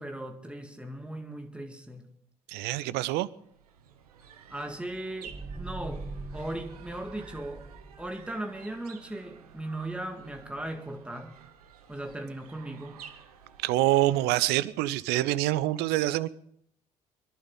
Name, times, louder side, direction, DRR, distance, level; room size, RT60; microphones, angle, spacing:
voice 1, 0.0-2.1 4.5-6.1 6.3-7.7 8.0-11.4 11.9-13.0, right 1 dB, 5° right, 5 dB, 2.0 m, -38 dB
voice 2, 2.5-3.3 13.6-16.3, right 16 dB, 60° right, 17 dB, 0.6 m, -26 dB
sound 1, 3.3-14.9, right 8 dB, 80° right, 1.0 m, -52 dB
sound 2, 5.2-8.4, right 3 dB, 45° right, 5.7 m, -42 dB
25.0 x 11.0 x 3.9 m, 0.70 s
figure-of-eight pair, 50°, 19 cm